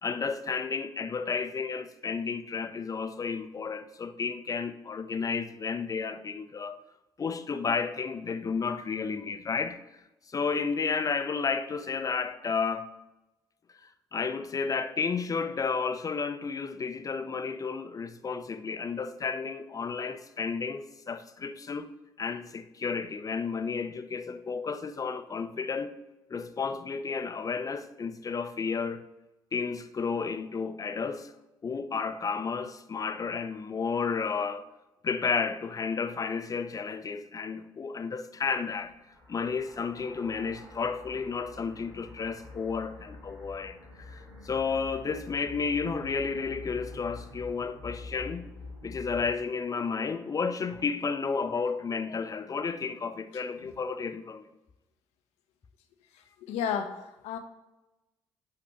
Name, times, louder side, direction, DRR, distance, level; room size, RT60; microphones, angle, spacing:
voice 1, 0.0-6.8 7.2-9.8 10.3-12.9 14.1-21.9 22.2-25.9 26.3-29.0 29.5-31.3 31.6-34.7 35.0-38.9 39.3-48.5 48.8-54.4, left 5 dB, 30° left, 0.6 m, -32 dB
sound 1, 38.8-49.3, left 2 dB, 85° right, 1.6 m, -46 dB
voice 2, 53.3-53.7 56.1-57.4, left 7 dB, 60° left, 0.8 m, -34 dB
5.8 x 5.2 x 5.7 m
figure-of-eight pair, 45°, 12 cm